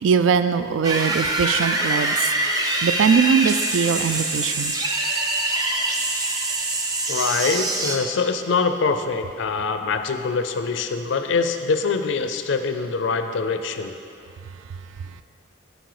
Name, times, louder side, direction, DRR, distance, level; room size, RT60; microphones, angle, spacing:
voice 1, 0.0-2.3 2.6-4.7, right 6 dB, 85° right, 12 dB, 0.3 m, -21 dB
sound 1, 0.8-8.0, right 2 dB, 20° right, 0.5 m, -24 dB
voice 2, 7.1-13.9, left 4 dB, 75° left, 8 dB, 0.5 m, -24 dB
7.7 x 5.2 x 4.8 m, 2.5 s
head